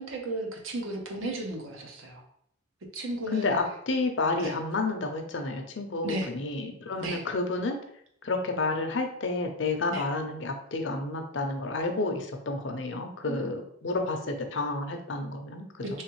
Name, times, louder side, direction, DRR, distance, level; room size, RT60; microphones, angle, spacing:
voice 1, 0.0-2.2 2.9-3.5 4.4-4.5 6.0-6.3 7.0-7.2 9.9-10.0 13.3-13.4 15.8-16.0, right 1 dB, 85° right, 1 dB, 0.8 m, -34 dB
voice 2, 3.3-7.8 8.2-16.0, left 3 dB, 65° left, 4 dB, 0.6 m, -30 dB
3.4 x 3.2 x 3.0 m, 0.69 s
head